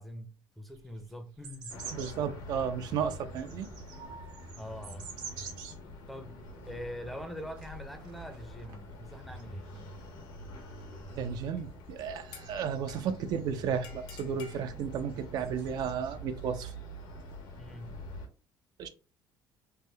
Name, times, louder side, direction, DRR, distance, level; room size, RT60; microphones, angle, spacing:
voice 1, 0.0-1.8 4.6-5.1 6.1-6.4 6.6-9.7 10.1-10.3 17.6-18.0, equal, ahead, 0.5 m, -44 dB
sound 1, 0.7-2.3 2.8-5.7 6.2-6.3 6.6-6.9 7.6-8.8 9.1-13.0 13.3-14.0 14.7-16.8 17.2-17.9, right 5 dB, 80° right, 1.0 m, -49 dB
sound 2, 1.7-18.3, equal, 70° left, 1.0 m, -46 dB
voice 2, 1.9-3.7 4.0-4.4 11.2-16.7 18.8-18.9, right 7 dB, 60° right, 0.4 m, -34 dB
sound 3, 11.6-11.8 12.3-13.3 13.8-14.6, left 7 dB, 85° left, 0.7 m, -51 dB
3.4 x 2.1 x 3.2 m
cardioid pair, 130°, 8 cm